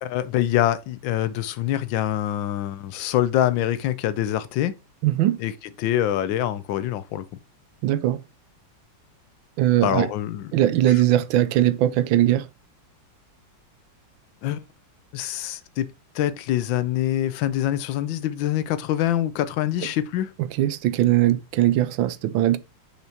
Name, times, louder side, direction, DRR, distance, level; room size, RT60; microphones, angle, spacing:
voice 1, 0.0-4.7 5.4-5.5 5.8-7.2 9.8-10.5 14.4-14.6 15.1-20.3, left 12 dB, 80° left, 1.4 m, -25 dB
voice 2, 5.0-5.4 7.8-8.2 9.6-10.1 10.5-12.5 20.6-22.6, right 13 dB, 90° right, 1.4 m, -20 dB
6.0 x 5.6 x 2.8 m
omnidirectional pair, 2.1 m